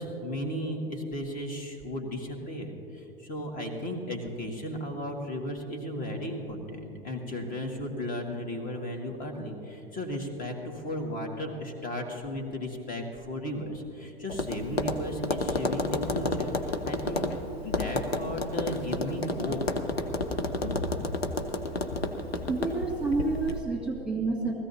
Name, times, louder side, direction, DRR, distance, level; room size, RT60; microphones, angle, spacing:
voice 1, 0.0-17.3 17.6-19.6 20.4-20.9, equal, 30° left, 2 dB, 2.1 m, -35 dB
Tap, 14.3-23.6, left 2 dB, 85° left, 0.9 m, -31 dB
voice 2, 22.3-24.5, right 3 dB, 5° right, -4 dB, 2.3 m, -29 dB
20.0 x 15.0 x 2.8 m, 2.9 s
figure-of-eight pair, 85°, 30 cm